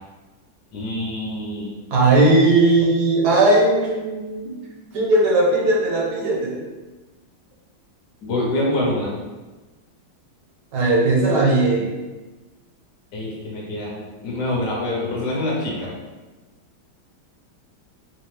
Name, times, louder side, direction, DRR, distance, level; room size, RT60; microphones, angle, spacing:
voice 1, 0.7-1.7 8.2-9.1 13.1-15.9, left 1 dB, 55° left, -4 dB, 1.4 m, -25 dB
voice 2, 1.9-4.5 4.9-6.6 10.7-11.9, right 2 dB, 60° right, -3 dB, 1.2 m, -17 dB
4.3 x 2.4 x 3.3 m, 1.2 s
omnidirectional pair, 2.3 m